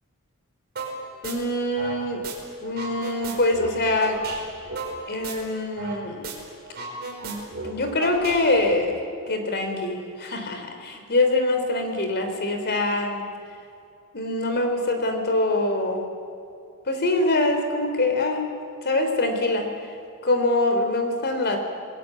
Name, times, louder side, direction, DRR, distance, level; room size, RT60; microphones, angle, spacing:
sound 1, 0.8-0.9 1.2-2.3 2.6-6.0 6.2-6.3 6.6-8.7, right 3 dB, 45° right, 5.7 m, -34 dB
voice 1, 1.2-2.2 2.6-4.2 5.1-6.3 7.2-9.0 9.3-13.3 14.1-16.1 16.9-18.4 18.8-19.7 20.2-21.6, left 2 dB, 50° left, 5 dB, 3.6 m, -24 dB
27.0 x 20.5 x 8.5 m, 2.4 s
head